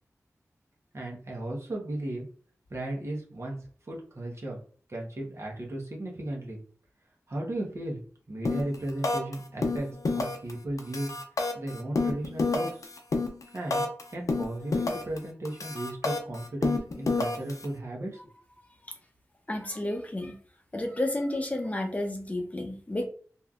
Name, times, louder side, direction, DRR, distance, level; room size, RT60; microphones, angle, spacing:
voice 1, 0.9-2.3 2.7-3.6 3.9-4.6 4.9-6.6 7.3-8.0 8.3-9.9 10.1-11.1 11.5-12.8 13.5-13.9 14.1-18.3, right 1 dB, 50° right, -1 dB, 1.1 m, -35 dB
sound 1, 8.4-8.7 9.0-9.3 9.6-10.5 10.8-14.0 14.3-15.2 15.4-17.6, left 3 dB, 75° left, 0.5 m, -28 dB
voice 2, 19.5-20.4 20.7-23.1, left 1 dB, 25° left, 2 dB, 0.6 m, -31 dB
3.1 x 2.6 x 2.4 m, 0.43 s
wide cardioid pair, 65°, 6 cm